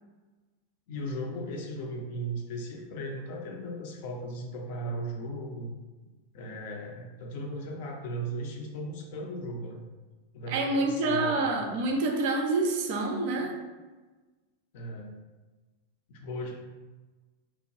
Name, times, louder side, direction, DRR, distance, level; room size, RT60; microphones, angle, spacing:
voice 1, 0.9-5.7 6.3-9.9 10.3-11.5 14.7-15.2 16.1-16.5, right 1 dB, 50° left, 1 dB, 0.4 m, -37 dB
voice 2, 10.5-13.6, right 2 dB, 50° right, 3 dB, 0.4 m, -27 dB
2.9 x 2.2 x 2.7 m, 1.2 s
figure-of-eight pair, 90°, 0 cm